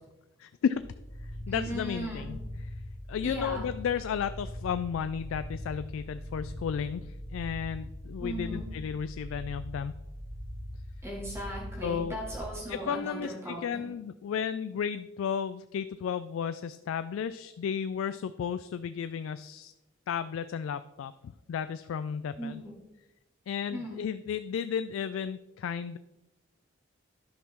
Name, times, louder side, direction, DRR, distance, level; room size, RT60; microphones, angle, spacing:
voice 1, 0.4-0.8 1.2-2.4 3.1-10.0 11.8-12.2 12.7-19.7 20.1-22.6 23.5-26.0, left 7 dB, 85° left, 12 dB, 0.3 m, -33 dB
sound 1, 0.7-12.4, equal, 30° left, 2.4 m, -41 dB
voice 2, 1.5-2.3 3.2-3.6 8.2-8.7 11.0-13.8 22.4-22.7 23.7-24.0, equal, 15° right, -3 dB, 1.5 m, -38 dB
11.0 x 5.8 x 3.6 m, 0.99 s
head